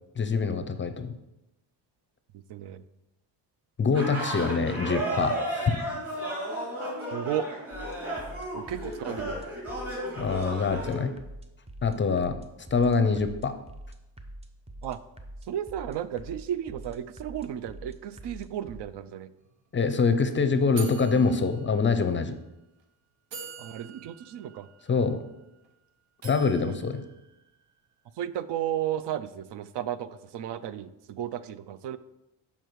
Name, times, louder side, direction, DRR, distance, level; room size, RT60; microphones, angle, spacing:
voice 1, 0.2-1.1 3.8-5.7 10.2-11.1 11.8-12.4 12.7-13.5 19.7-22.4 24.9-25.2 26.2-27.0, left 4 dB, 30° left, 9 dB, 0.5 m, -25 dB
voice 2, 2.5-2.8 7.1-7.5 8.5-9.4 14.8-15.0 15.5-19.3 23.6-24.7 28.2-32.0, right 10 dB, 70° right, 14 dB, 0.5 m, -33 dB
sound 1, 3.9-11.0, right 1 dB, 30° right, 2.5 m, -33 dB
sound 2, 7.7-18.8, right 1 dB, 15° right, 0.6 m, -46 dB
sound 3, 19.4-19.5 19.8-20.0 20.8-22.2 22.8-22.9 23.3-25.7 26.2-27.9, right 6 dB, 90° right, 1.2 m, -45 dB
6.5 x 5.6 x 4.6 m, 0.94 s
cardioid pair, 125°, 43 cm